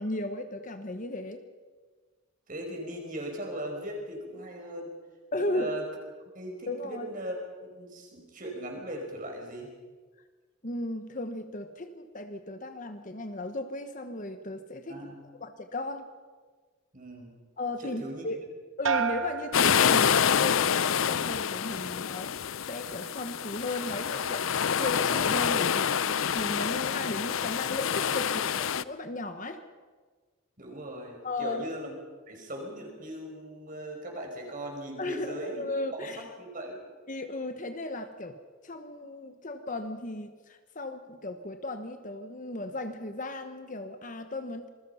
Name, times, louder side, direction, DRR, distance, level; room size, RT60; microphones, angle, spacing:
voice 1, 0.0-1.4 5.3-5.8 6.7-7.1 10.6-15.1 15.4-16.1 17.6-18.4 18.8-24.5 24.8-29.6 31.2-31.6 35.0-36.2 37.1-38.4 38.6-44.7, left 2 dB, 40° left, 8 dB, 1.2 m, -35 dB
voice 2, 2.5-4.9 5.4-5.9 6.4-7.3 7.7-9.7 14.9-15.2 16.9-17.3 17.8-18.3 30.6-31.9 32.3-35.7 36.2-36.8, right 1 dB, 40° right, 1 dB, 5.3 m, -39 dB
sound 1, 18.8-20.6 21.0-21.6, right 6 dB, 70° right, 1.3 m, -33 dB
sound 2, 19.5-28.8, left 8 dB, 75° left, 0.6 m, -27 dB
27.0 x 21.0 x 5.7 m, 1.4 s
head